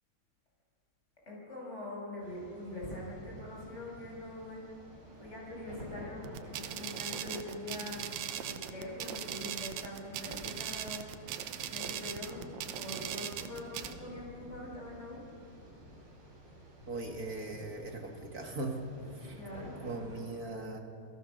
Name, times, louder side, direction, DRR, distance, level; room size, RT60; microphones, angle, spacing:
voice 1, 1.2-4.6 5.2-11.1 11.6-12.5 12.7-15.2 19.3-19.8, left 1 dB, 15° left, -3 dB, 6.8 m, -43 dB
sound 1, 2.2-20.2, equal, 85° right, 9.2 m, -52 dB
sound 2, 6.2-13.9, right 10 dB, 70° right, 1.7 m, -40 dB
voice 2, 16.9-19.4 19.8-20.8, right 2 dB, 40° right, 2 dB, 1.3 m, -39 dB
29.0 x 17.5 x 6.5 m, 2.5 s
omnidirectional pair, 4.2 m